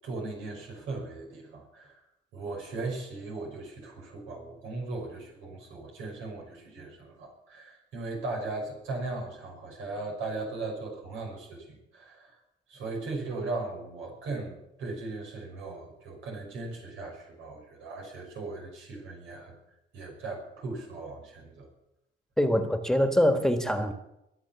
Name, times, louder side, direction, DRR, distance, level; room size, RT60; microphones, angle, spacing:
voice 1, 0.0-2.1 2.3-12.4 12.7-19.6 19.9-21.7, right 3 dB, 85° right, 0 dB, 5.6 m, -38 dB
voice 2, 22.4-23.9, equal, 5° left, 7 dB, 1.6 m, -24 dB
22.0 x 7.6 x 7.1 m, 0.85 s
cardioid pair, 90°, 20 cm